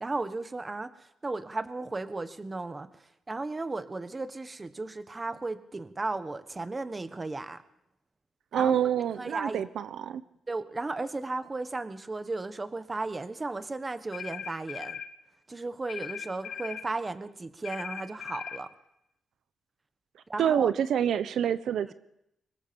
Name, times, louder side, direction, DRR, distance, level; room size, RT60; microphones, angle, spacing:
voice 1, 0.0-0.9 1.2-2.9 3.3-7.6 8.5-8.7 9.2-9.6 10.5-15.0 15.5-18.7 20.3-20.7 21.8-21.9, right 3 dB, 20° right, 11 dB, 1.3 m, -35 dB
voice 2, 8.5-10.2 20.4-21.9, right 9 dB, 70° right, 13 dB, 1.1 m, -27 dB
sound 1, 14.1-15.1 15.9-16.9 17.6-18.6, left 7 dB, 70° left, 3.1 m, -39 dB
25.0 x 22.5 x 7.1 m, 0.79 s
wide cardioid pair, 155°, 0 cm